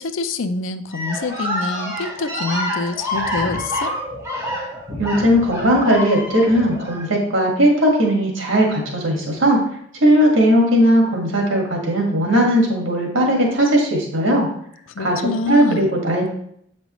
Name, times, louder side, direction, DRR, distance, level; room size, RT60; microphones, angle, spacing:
voice 1, 0.0-3.9 14.9-15.9, left 3 dB, 85° left, 10 dB, 0.5 m, -26 dB
sound 1, 0.9-7.0, equal, 15° right, 2.0 m, -27 dB
voice 2, 5.0-9.6 10.0-14.5 15.0-15.2 15.5-16.3, equal, 90° right, 0 dB, 1.7 m, -17 dB
8.0 x 5.3 x 3.1 m, 0.68 s
head